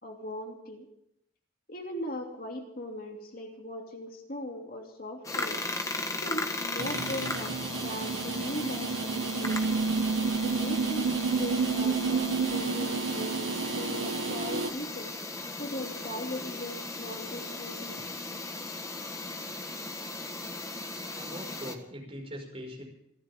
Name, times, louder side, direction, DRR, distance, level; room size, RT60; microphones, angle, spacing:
voice 1, 0.0-0.9 1.7-5.6 6.2-9.6 10.4-11.1 11.4-15.1 15.6-18.1, left 1 dB, 45° left, 1 dB, 2.7 m, -39 dB
sound 1, 5.2-21.7, left 2 dB, 15° left, 1.3 m, -37 dB
sound 2, 6.8-14.7, right 4 dB, 85° right, 1.6 m, -30 dB
voice 2, 21.1-22.8, equal, 30° right, 0 dB, 5.5 m, -41 dB
28.0 x 14.0 x 3.7 m, 0.77 s
head